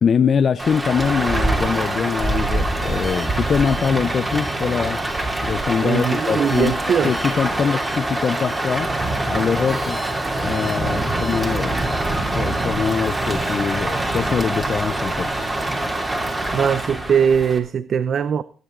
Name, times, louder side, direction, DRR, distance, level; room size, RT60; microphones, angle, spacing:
voice 1, 0.0-5.0 5.4-8.9 9.2-10.0 10.4-11.9 12.3-15.3, left 6 dB, 50° left, 0.5 m, -23 dB
Rain, 0.6-17.6, right 2 dB, 20° right, 2.9 m, -24 dB
sound 1, 2.8-17.3, left 1 dB, 5° left, 2.1 m, -41 dB
voice 2, 5.8-7.1 16.5-18.4, right 7 dB, 55° right, 0.5 m, -20 dB
20.5 x 8.1 x 3.8 m
cardioid pair, 90°, 0 cm